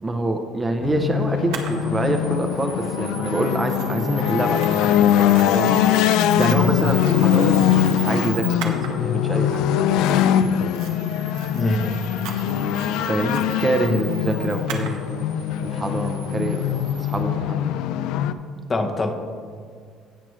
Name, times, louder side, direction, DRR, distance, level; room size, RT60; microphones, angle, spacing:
voice 1, 0.0-4.6 5.5-5.8 6.4-9.6 13.1-15.3 15.6-17.8, right 2 dB, 15° right, 5 dB, 0.6 m, -26 dB
sound 1, 0.8-18.3, left 10 dB, 75° left, 0.3 m, -22 dB
Camera, 1.5-17.2, right 9 dB, 85° right, 1.0 m, -37 dB
voice 2, 6.3-6.8 11.5-12.1 18.7-19.1, left 1 dB, 25° left, 5 dB, 0.8 m, -23 dB
16.5 x 5.9 x 3.1 m, 2.1 s
cardioid pair, 140°, 0 cm